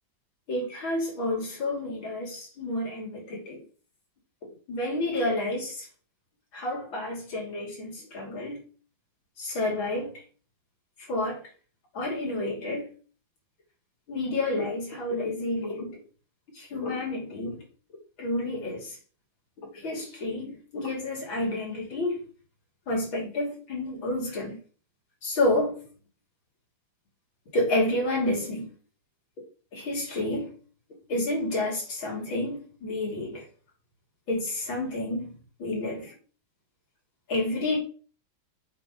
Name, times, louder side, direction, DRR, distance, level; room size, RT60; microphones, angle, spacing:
voice 1, 0.5-3.6 4.7-5.9 6.5-8.6 9.4-10.1 11.1-11.4 11.9-12.9 14.1-16.0 16.6-17.6 18.2-19.0 19.6-22.2 22.9-24.6 25.2-25.8 27.5-28.7 29.7-30.5 31.1-33.4 34.3-35.3 35.6-36.1 37.3-37.8, left 1 dB, 85° left, 3.8 m, -30 dB
7.1 x 4.4 x 5.2 m
omnidirectional pair, 2.1 m